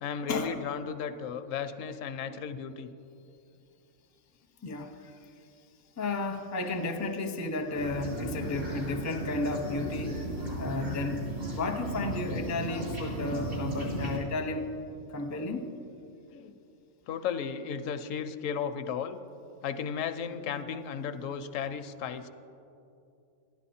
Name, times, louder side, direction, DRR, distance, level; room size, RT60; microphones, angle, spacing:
voice 1, 0.0-2.9 16.3-16.5 17.1-19.2 19.6-22.3, left 7 dB, 80° left, 11 dB, 0.9 m, -35 dB
voice 2, 4.6-5.3 6.0-10.2 10.6-11.2 11.5-14.7 15.1-15.7, left 2 dB, 20° left, 5 dB, 0.4 m, -33 dB
sound 1, 7.7-14.2, right 1 dB, 70° right, 3.3 m, -35 dB
12.5 x 10.5 x 4.2 m, 2.7 s
omnidirectional pair, 1.3 m